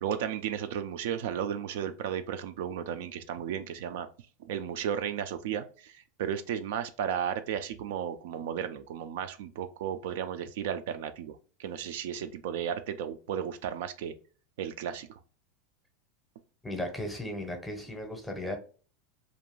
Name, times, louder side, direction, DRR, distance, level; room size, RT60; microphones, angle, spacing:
voice 1, 0.0-4.1 4.4-14.1 14.6-15.2, right 9 dB, 75° right, 9 dB, 0.3 m, -34 dB
voice 2, 16.6-18.6, left 1 dB, 5° left, 4 dB, 0.7 m, -36 dB
2.5 x 2.3 x 3.0 m, 0.38 s
supercardioid pair, 135°, 0 cm